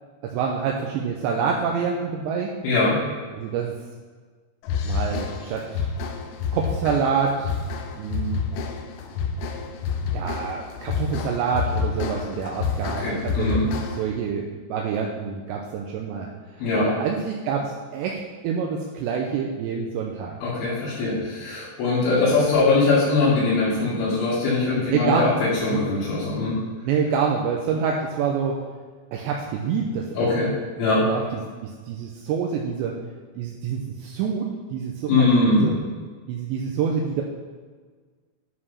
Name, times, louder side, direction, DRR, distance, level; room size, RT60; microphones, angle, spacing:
voice 1, 0.2-2.5 3.3-3.7 4.8-5.9 6.5-7.5 7.9-8.4 10.1-13.7 14.0-16.3 16.6-18.2 18.4-20.4 22.2-22.4 24.9-25.3 25.7-25.8 26.8-28.6 29.1-30.5 31.0-31.2 31.6-33.0 33.4-35.8 36.3-37.2, right 6 dB, 80° right, -1 dB, 2.6 m, -27 dB
voice 2, 2.6-3.0 13.0-13.6 16.6-16.9 20.4-26.6 30.2-30.5 30.8-31.0 35.1-35.7, left 3 dB, 65° left, -11 dB, 4.7 m, -21 dB
sound 1, 4.6-14.2, left 5 dB, 85° left, 3.3 m, -29 dB
10.5 x 5.0 x 5.6 m, 1.5 s
omnidirectional pair, 5.9 m